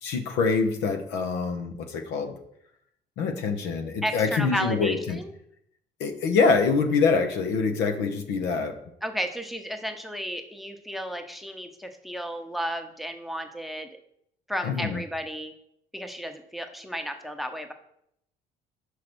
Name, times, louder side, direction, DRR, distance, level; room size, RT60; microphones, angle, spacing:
voice 1, 0.0-2.4 3.2-5.2 6.0-8.8 14.6-15.0, left 4 dB, 90° left, 7 dB, 0.9 m, -25 dB
voice 2, 4.0-5.3 9.0-13.9 14.5-15.5 15.9-17.7, equal, ahead, 6 dB, 0.8 m, -33 dB
5.3 x 4.8 x 6.0 m, 0.75 s
cardioid pair, 110°, 17 cm